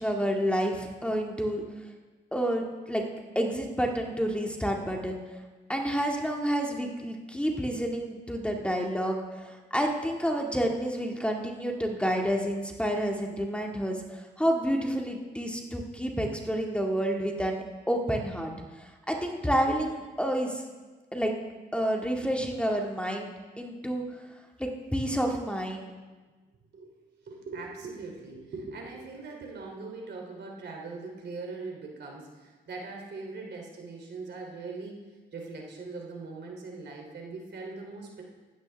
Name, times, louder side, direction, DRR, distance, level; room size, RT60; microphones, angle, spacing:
voice 1, 0.0-1.6 2.3-3.0 3.4-5.2 5.7-20.6 21.1-21.3 21.7-23.3 23.6-24.0 24.6-25.9, equal, 5° left, 1 dB, 1.9 m, -29 dB
voice 2, 27.2-35.0 35.3-38.2, right 3 dB, 65° right, 0 dB, 2.9 m, -41 dB
15.0 x 13.0 x 3.4 m, 1.3 s
supercardioid pair, 50°, 19 cm